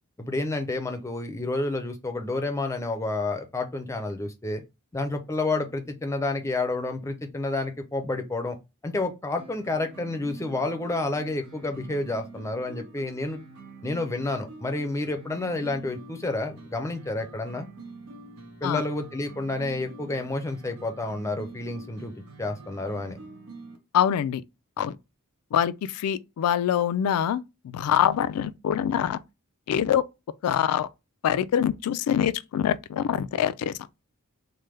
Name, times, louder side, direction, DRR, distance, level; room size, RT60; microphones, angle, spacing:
voice 1, 0.2-4.6 4.9-8.6 8.8-13.4 13.8-17.7 18.6-22.1 22.4-23.2, left 2 dB, 15° left, 0.4 m, -30 dB
sound 1, 9.4-23.8, right 3 dB, 90° right, 0.9 m, -46 dB
voice 2, 23.9-24.4 24.8-24.9 25.5-29.2 29.7-30.0 30.4-30.9 31.2-33.7, left 9 dB, 90° left, 0.3 m, -24 dB
3.4 x 2.1 x 3.1 m
head